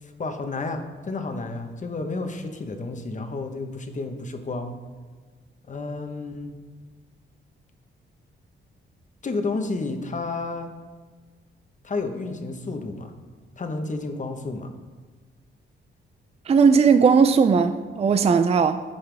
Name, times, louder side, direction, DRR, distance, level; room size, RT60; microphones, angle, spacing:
voice 1, 0.0-4.8 5.7-6.5 9.2-10.7 11.8-13.1 13.6-14.7, left 3 dB, 35° left, 5 dB, 1.1 m, -31 dB
voice 2, 16.5-18.8, right 5 dB, 30° right, 9 dB, 0.4 m, -18 dB
14.5 x 5.6 x 3.4 m, 1.4 s
cardioid pair, 95°, 20 cm